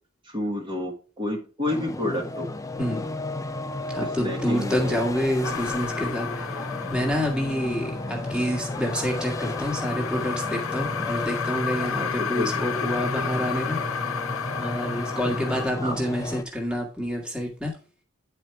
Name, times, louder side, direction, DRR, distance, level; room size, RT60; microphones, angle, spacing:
voice 1, 0.2-2.5 4.2-5.0 12.0-13.6 15.2-15.9, left 1 dB, 25° right, -3 dB, 1.5 m, -31 dB
sound 1, 1.7-16.4, left 2 dB, 15° left, 0.5 m, -33 dB
voice 2, 2.8-3.1 3.9-6.6 6.9-14.0 14.6-17.8, equal, 5° right, 0 dB, 1.7 m, -28 dB
sound 2, 5.4-15.7, left 7 dB, 75° left, 0.6 m, -33 dB
9.8 x 4.5 x 4.7 m, 0.35 s
head